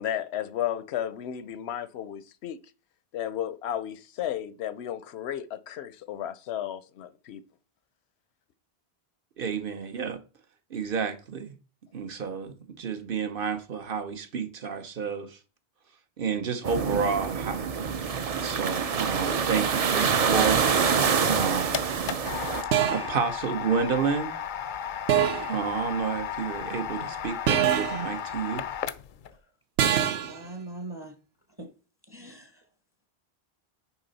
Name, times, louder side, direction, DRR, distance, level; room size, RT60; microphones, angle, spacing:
voice 1, 0.0-2.6 3.1-7.4, left 10 dB, 85° left, 0.9 m, -33 dB
voice 2, 9.4-10.2 10.7-11.5 11.9-15.4 16.2-17.7 18.4-21.9 22.9-24.3 25.5-28.6, right 6 dB, 60° right, 1.0 m, -30 dB
sound 1, 16.6-22.6, right 6 dB, 45° right, 0.6 m, -26 dB
sound 2, 21.5-21.7 22.7-23.2 25.1-25.6 27.5-28.1 29.8-30.4, right 10 dB, 85° right, 0.9 m, -25 dB
sound 3, 21.7-29.3, left 8 dB, 60° left, 0.6 m, -35 dB
voice 3, 30.1-31.1 31.6-31.7 32.1-32.6, right 2 dB, 25° right, 0.9 m, -41 dB
7.0 x 5.0 x 4.0 m
omnidirectional pair, 1.1 m